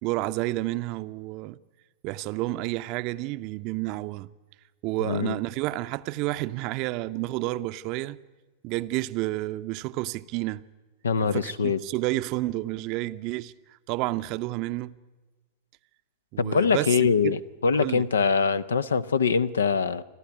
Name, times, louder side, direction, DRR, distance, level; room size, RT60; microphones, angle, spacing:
voice 1, 0.0-1.6 2.0-4.3 4.8-8.2 8.6-10.6 11.2-13.5 13.9-15.0 16.3-17.4 17.8-18.0, right 18 dB, 40° right, 0.6 m, -30 dB
voice 2, 11.0-11.8 16.4-20.0, left 5 dB, 70° left, 0.7 m, -23 dB
29.5 x 12.5 x 9.6 m
figure-of-eight pair, 90°, 0 cm